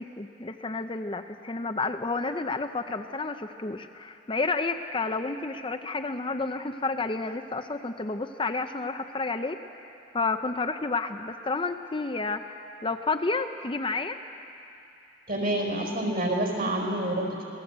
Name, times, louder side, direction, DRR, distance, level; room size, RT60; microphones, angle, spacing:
voice 1, 0.0-9.6 10.1-14.2, left 3 dB, 25° left, 7 dB, 0.6 m, -30 dB
voice 2, 15.3-17.4, right 1 dB, 50° right, 1 dB, 4.7 m, -28 dB
26.5 x 18.5 x 8.0 m, 2.7 s
head